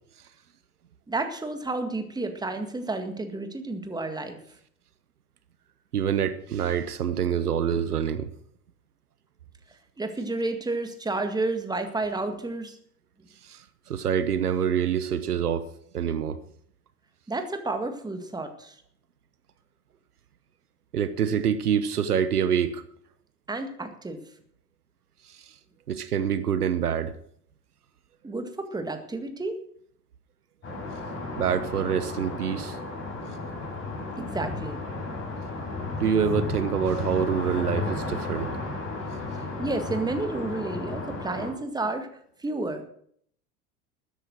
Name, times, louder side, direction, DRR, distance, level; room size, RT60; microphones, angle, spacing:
voice 1, 1.1-4.4 10.0-12.8 17.3-18.8 23.5-24.2 28.2-29.6 34.2-34.8 39.6-42.1 42.4-42.9, right 2 dB, 10° right, 1.9 m, -31 dB
voice 2, 5.9-8.3 13.4-15.7 15.9-16.4 20.9-22.8 25.2-25.5 25.9-27.2 31.4-32.8 36.0-38.5, right 8 dB, 75° right, 1.1 m, -26 dB
sound 1, 30.6-41.5, left 3 dB, 25° left, 6.3 m, -33 dB
13.5 x 9.8 x 6.3 m
figure-of-eight pair, 80°, 45 cm